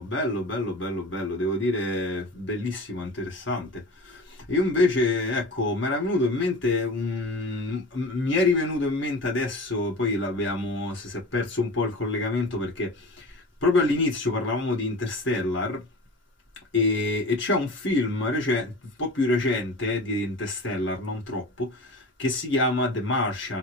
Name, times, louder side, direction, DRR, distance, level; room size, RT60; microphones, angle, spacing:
voice 1, 0.0-15.9 16.7-23.6, left 2 dB, 60° left, 1.7 m, -26 dB
4.1 x 2.1 x 3.0 m
head